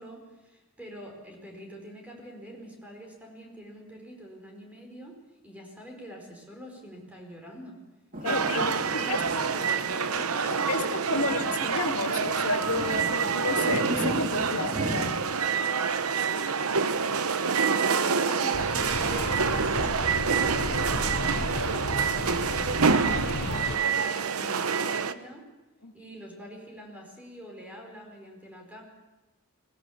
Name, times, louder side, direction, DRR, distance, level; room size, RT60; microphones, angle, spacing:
voice 1, 0.0-5.1 5.4-7.8 8.2-11.7 17.7-25.4 25.9-28.8, right 1 dB, 5° right, 1 dB, 4.7 m, -45 dB
sound 1, 8.1-15.2, equal, 40° right, 2.7 m, -37 dB
voice 2, 8.2-8.7 9.0-9.2 10.2-15.3 25.8-25.9, left 3 dB, 80° left, 3 dB, 2.2 m, -31 dB
sound 2, 8.3-25.1, right 5 dB, 75° right, 0.9 m, -27 dB
sound 3, 18.5-23.8, left 2 dB, 50° left, 0.8 m, -34 dB
20.5 x 18.5 x 7.3 m, 1.1 s
head